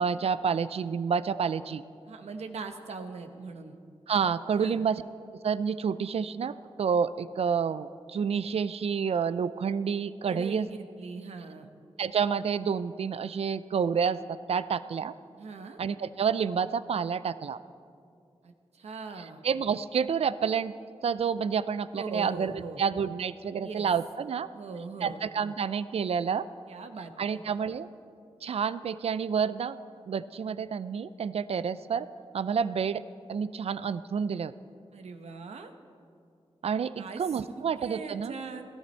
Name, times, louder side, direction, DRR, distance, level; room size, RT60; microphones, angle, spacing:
voice 1, 0.0-1.8 4.1-5.0 5.4-10.7 12.0-15.1 15.8-17.6 19.4-20.7 21.0-22.5 22.8-24.5 25.0-26.5 27.2-27.9 28.4-29.8 30.1-32.1 32.3-33.0 33.3-34.5 36.6-38.3, right 6 dB, 70° right, 15 dB, 0.4 m, -29 dB
voice 2, 2.0-3.8 4.6-4.8 10.2-11.7 15.4-15.8 18.4-19.4 21.9-22.8 23.6-23.9 24.5-25.2 26.7-27.4 34.9-35.7 37.0-37.5 37.8-38.6, right 4 dB, 90° right, 7 dB, 1.0 m, -41 dB
17.5 x 13.0 x 4.4 m, 2.4 s
cardioid pair, 60°, 11 cm